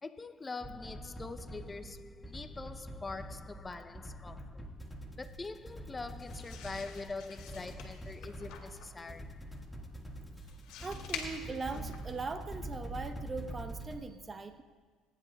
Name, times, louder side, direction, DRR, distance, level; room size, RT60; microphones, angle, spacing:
voice 1, 0.0-4.7 5.2-9.6, left 3 dB, 20° left, 0.6 m, -44 dB
sound 1, 0.6-14.0, equal, 5° left, 1.7 m, -45 dB
sound 2, 6.2-12.4, left 6 dB, 70° left, 2.1 m, -48 dB
voice 2, 10.8-14.6, right 4 dB, 25° right, 0.9 m, -40 dB
27.5 x 10.0 x 2.3 m
supercardioid pair, 80°, 0 cm